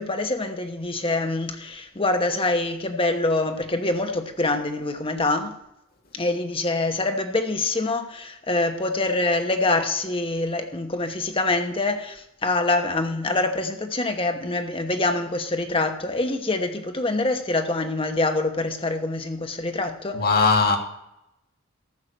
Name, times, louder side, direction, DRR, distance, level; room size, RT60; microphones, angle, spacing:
voice 1, 0.0-5.6 6.1-20.2, left 2 dB, 25° left, 1.0 m, -25 dB
voice 2, 20.1-20.8, left 4 dB, 45° left, 1.7 m, -19 dB
14.0 x 5.7 x 6.7 m
head